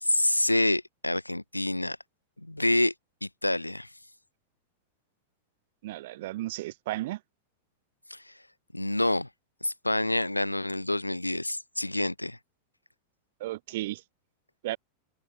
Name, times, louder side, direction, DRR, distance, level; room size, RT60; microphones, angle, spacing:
voice 1, 0.0-2.0 2.4-2.9 3.2-3.9 8.1-8.3 8.7-9.3 9.6-12.4, left 1 dB, 85° left, 1.3 m, -27 dB
voice 2, 5.8-7.2 13.4-14.0 14.6-14.8, right 17 dB, 55° right, 2.4 m, -34 dB
figure-of-eight pair, 90°, 0 cm